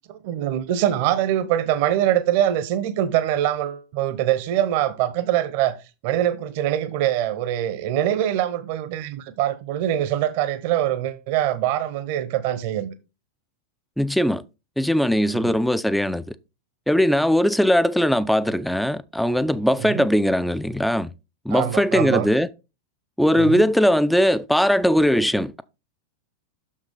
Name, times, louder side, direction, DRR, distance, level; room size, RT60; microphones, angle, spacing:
voice 1, 0.1-5.8 6.0-12.9 15.4-15.5 19.8-20.0 21.5-22.3 23.4-23.6, right 12 dB, 50° right, 0.8 m, -23 dB
voice 2, 14.0-14.4 14.8-16.3 16.9-21.1 21.5-22.5 23.2-25.6, equal, ahead, 0.4 m, -20 dB
6.5 x 6.4 x 3.7 m
figure-of-eight pair, 90°, 0 cm